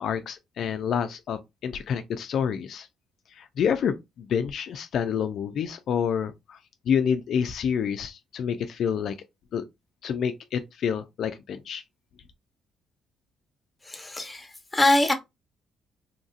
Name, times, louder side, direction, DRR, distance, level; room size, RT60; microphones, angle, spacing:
voice 1, 0.0-2.9 3.3-6.6 6.9-9.2 9.5-9.6 10.0-11.8, left 7 dB, 70° left, 0.3 m, -28 dB
voice 2, 13.8-15.1, left 2 dB, 15° left, 0.8 m, -23 dB
2.8 x 2.6 x 2.4 m
cardioid pair, 90°, 0 cm